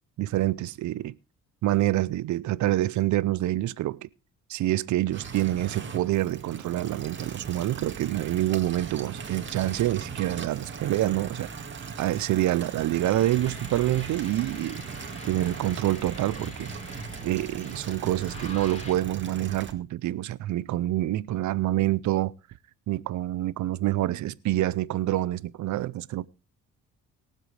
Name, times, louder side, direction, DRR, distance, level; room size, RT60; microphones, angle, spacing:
voice 1, 0.2-1.1 1.6-4.1 4.5-11.5 12.0-14.8 15.2-16.7 17.2-22.3 22.9-26.3, right 15 dB, 70° right, 0.6 m, -27 dB
sound 1, 5.1-19.7, right 5 dB, 40° right, 2.0 m, -39 dB
sound 2, 13.0-18.9, left 2 dB, 20° left, 3.5 m, -45 dB
22.0 x 7.7 x 3.3 m
cardioid pair, 90°, 30 cm